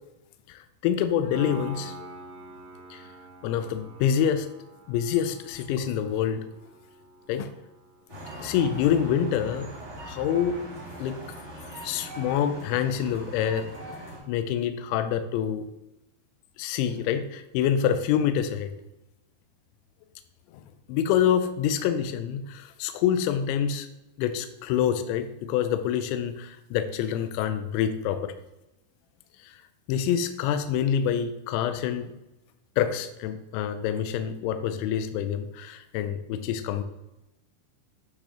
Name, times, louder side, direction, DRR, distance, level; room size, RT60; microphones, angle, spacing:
voice 1, 0.5-2.1 2.9-3.0 3.4-4.5 4.9-6.4 7.3-7.5 8.4-9.7 10.0-10.6 11.0-11.2 11.8-15.6 16.6-18.7 20.9-23.9 24.2-28.3 29.9-32.1 32.8-36.8, left 9 dB, 85° left, 9 dB, 2.6 m, -26 dB
Piano, 1.3-8.0, right 1 dB, 80° right, 4.3 m, -46 dB
sound 1, 8.1-14.2, right 1 dB, 40° right, 3.0 m, -41 dB
11.5 x 4.1 x 2.9 m, 0.94 s
omnidirectional pair, 5.9 m